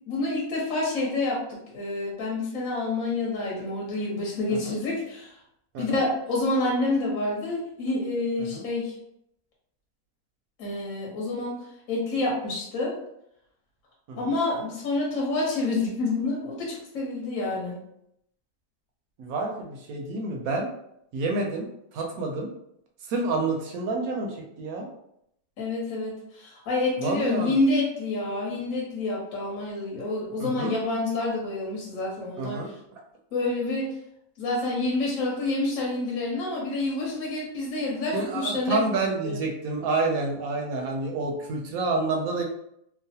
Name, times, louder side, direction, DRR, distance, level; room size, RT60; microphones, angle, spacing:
voice 1, 0.1-5.3 5.8-8.9 10.6-11.6 11.9-12.9 14.2-17.8 25.6-32.6 33.3-33.9 34.4-38.9 39.2-39.4, left 2 dB, 60° left, -3 dB, 1.2 m, -28 dB
voice 2, 19.2-20.7 21.1-21.7 21.9-22.5 23.1-24.9 27.0-27.5 30.4-30.8 32.4-32.7 38.1-42.4, right 3 dB, 70° right, 1 dB, 0.9 m, -28 dB
3.1 x 2.0 x 2.7 m, 0.75 s
omnidirectional pair, 1.7 m